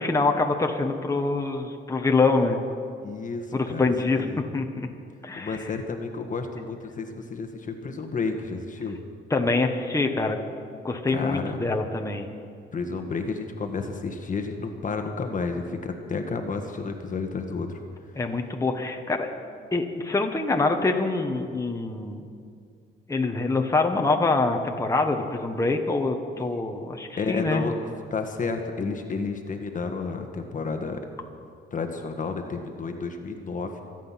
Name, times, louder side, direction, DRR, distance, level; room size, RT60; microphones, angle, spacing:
voice 1, 0.0-2.6 3.5-4.2 4.5-4.9 5.2-5.6 9.3-10.4 10.8-12.3 18.1-19.3 19.7-22.2 23.1-27.6, left 3 dB, 15° left, 3 dB, 1.5 m, -25 dB
voice 2, 3.0-4.4 5.4-9.0 11.1-11.6 12.7-17.8 26.3-26.5 27.2-27.7 28.1-31.0 31.7-33.8, left 4 dB, 40° left, 5 dB, 1.5 m, -31 dB
26.0 x 9.3 x 5.9 m, 2.3 s
cardioid pair, 90°, 20 cm